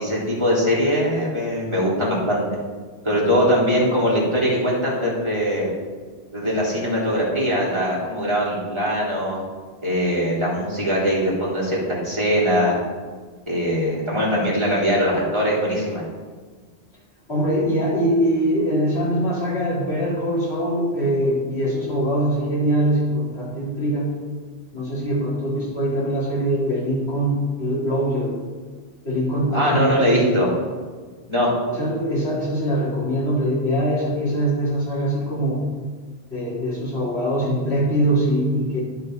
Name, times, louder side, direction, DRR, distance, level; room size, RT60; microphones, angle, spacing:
voice 1, 0.0-2.4 3.0-5.7 6.3-9.4 9.8-12.8 13.5-16.0 29.5-30.5 31.3-31.5, equal, 25° right, -6 dB, 3.4 m, -21 dB
voice 2, 17.3-24.1 24.7-28.4 29.0-30.3 31.7-35.6 36.3-38.8, equal, 80° left, -8 dB, 4.3 m, -22 dB
11.0 x 9.0 x 4.7 m, 1.5 s
omnidirectional pair, 1.1 m